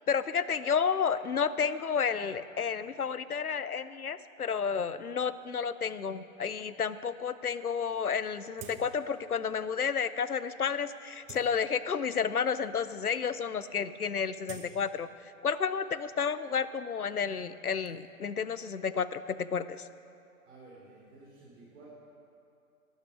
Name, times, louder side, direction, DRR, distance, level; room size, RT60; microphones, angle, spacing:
voice 1, 0.1-15.1 15.4-19.9, left 6 dB, 90° left, 15 dB, 0.6 m, -31 dB
sound 1, 7.5-7.6 7.8-7.9 8.5-9.2 9.6-9.8 10.4-10.6 11.0-12.1 12.8-12.9 13.2-13.5 13.8-15.6 15.9-17.9, right 6 dB, 15° right, 0.7 m, -51 dB
voice 2, 20.5-21.9, right 3 dB, 50° right, -5 dB, 3.7 m, -53 dB
12.0 x 11.0 x 6.1 m, 2.6 s
figure-of-eight pair, 110°, 43 cm